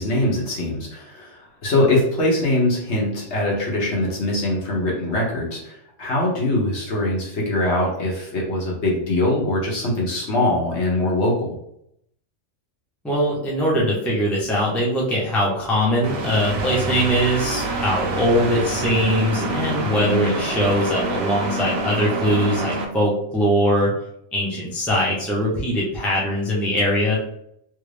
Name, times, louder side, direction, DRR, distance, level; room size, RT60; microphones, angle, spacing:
voice 1, 0.0-11.6, left 1 dB, 65° left, -3 dB, 1.3 m, -22 dB
voice 2, 13.0-23.9 24.3-27.2, equal, ahead, -4 dB, 0.5 m, -21 dB
sound 1, 16.0-22.9, right 2 dB, 65° right, 0.8 m, -26 dB
3.2 x 2.5 x 3.3 m, 0.73 s
omnidirectional pair, 1.3 m